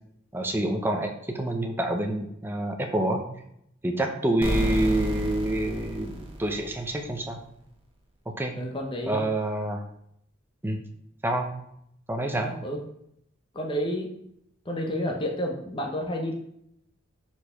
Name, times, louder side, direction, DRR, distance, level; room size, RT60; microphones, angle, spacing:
voice 1, 0.3-3.3 3.8-7.4 8.4-8.6 9.1-9.8 10.6-10.8 11.2-11.5 12.1-12.5, right 1 dB, 10° right, 3 dB, 0.6 m, -27 dB
sound 1, 4.4-7.1, right 1 dB, 25° right, 0.9 m, -30 dB
voice 2, 8.5-9.2 12.4-12.8 13.5-14.1 14.6-16.3, equal, 25° left, 1 dB, 0.8 m, -30 dB
4.8 x 4.4 x 5.5 m, 0.74 s
head